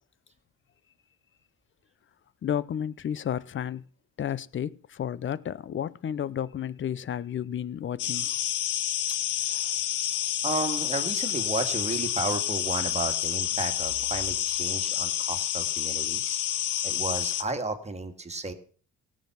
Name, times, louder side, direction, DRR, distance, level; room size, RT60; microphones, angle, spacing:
voice 1, 2.4-3.8 4.2-8.3, left 9 dB, 40° left, 0.7 m, -32 dB
sound 1, 8.0-17.4, left 12 dB, 80° left, 0.9 m, -29 dB
voice 2, 10.4-16.4 16.8-18.5, right 3 dB, 20° right, 2.1 m, -33 dB
17.0 x 7.6 x 5.9 m
cardioid pair, 85°, 30 cm